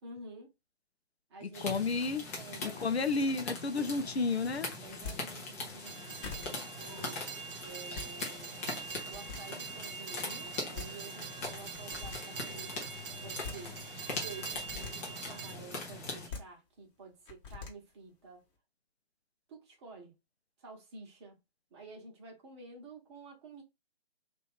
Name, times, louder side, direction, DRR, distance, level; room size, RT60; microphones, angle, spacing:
voice 1, 0.0-0.5 1.3-1.7 2.3-3.4 4.8-8.6 8.9-13.8 14.2-18.4 19.5-20.1 20.6-21.4 21.7-23.6, right 3 dB, 25° right, 1.0 m, -51 dB
voice 2, 1.4-2.2 2.6-4.7, left 4 dB, 85° left, 0.6 m, -31 dB
sound 1, 1.5-16.3, left 2 dB, 15° left, 0.5 m, -42 dB
sound 2, 5.0-5.2 5.9-6.0 6.2-6.5 7.7-8.1 8.8-9.4 10.5-10.6 10.7-10.9 11.7-12.2 13.2-13.6 14.5-14.9 16.1-16.4 17.3-17.7, left 5 dB, 30° left, 1.1 m, -42 dB
Train, 5.8-15.5, right 6 dB, 65° right, 0.5 m, -44 dB
2.9 x 2.5 x 3.5 m
figure-of-eight pair, 135°, 31 cm